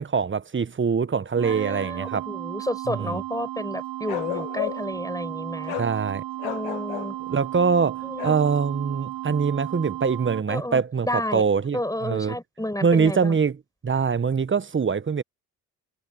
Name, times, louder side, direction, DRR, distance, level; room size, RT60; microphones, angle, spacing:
voice 1, 0.0-2.3 2.9-3.2 5.8-6.2 7.3-11.1 11.3-12.4 12.8-13.6 13.8-15.2, right 5 dB, 25° right, 1.3 m, -23 dB
voice 2, 1.4-5.7 6.4-7.2 8.0-8.4 10.5-11.4 11.7-13.4, left 1 dB, 10° left, 7.9 m, -31 dB
sound 1, 1.4-10.4, right 16 dB, 70° right, 2.8 m, -34 dB
Bark, 4.1-5.0 5.7-5.9 6.4-7.1 8.2-8.5, left 26 dB, 80° left, 1.0 m, -32 dB
hypercardioid pair, 50°, 44 cm